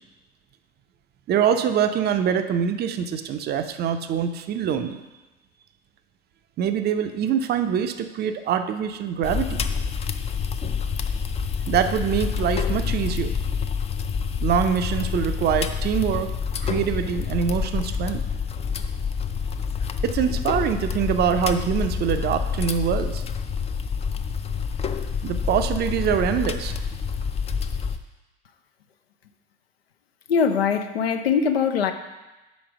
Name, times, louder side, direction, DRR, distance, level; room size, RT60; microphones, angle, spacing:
voice 1, 1.3-5.0 6.6-9.7 11.7-13.3 14.4-16.3 16.6-18.2 20.0-23.2 25.2-26.7, right 8 dB, 35° right, 8 dB, 0.5 m, -24 dB
sound 1, 9.2-28.0, left 6 dB, 20° left, 0.4 m, -27 dB
voice 2, 30.3-31.9, left 6 dB, 85° left, 7 dB, 0.6 m, -21 dB
5.2 x 5.1 x 5.9 m, 1.1 s
figure-of-eight pair, 65°, 30 cm